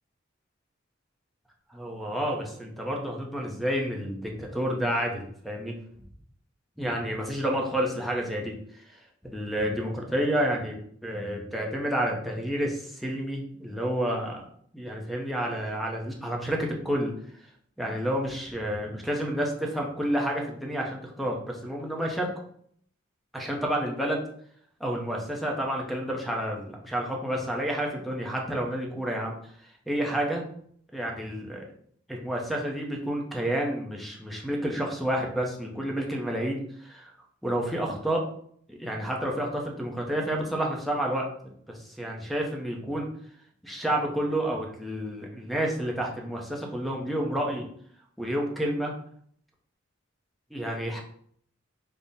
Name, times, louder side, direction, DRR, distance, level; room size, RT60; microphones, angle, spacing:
voice 1, 1.7-5.7 6.8-8.6 8.9-9.0 9.2-10.8 11.0-14.4 14.7-17.1 17.8-22.3 23.3-24.2 24.8-29.4 29.9-30.4 30.9-31.6 32.1-37.1 37.4-38.2 38.7-43.1 43.6-47.7 48.2-48.9 50.5-51.0, right 1 dB, ahead, 0 dB, 0.5 m, -30 dB
3.5 x 2.0 x 4.0 m, 0.63 s
head